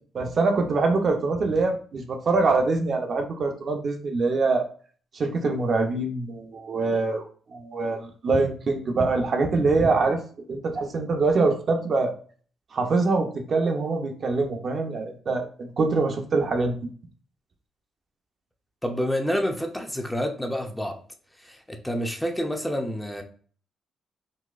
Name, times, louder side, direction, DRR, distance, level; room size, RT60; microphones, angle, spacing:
voice 1, 0.1-4.7 5.1-7.2 7.5-10.2 10.5-12.1 12.7-16.7, right 3 dB, 55° right, 3 dB, 0.6 m, -24 dB
voice 2, 18.8-21.0 21.4-23.2, equal, 5° left, 4 dB, 0.6 m, -28 dB
4.0 x 2.2 x 2.4 m, 0.43 s
supercardioid pair, 60°, 0 cm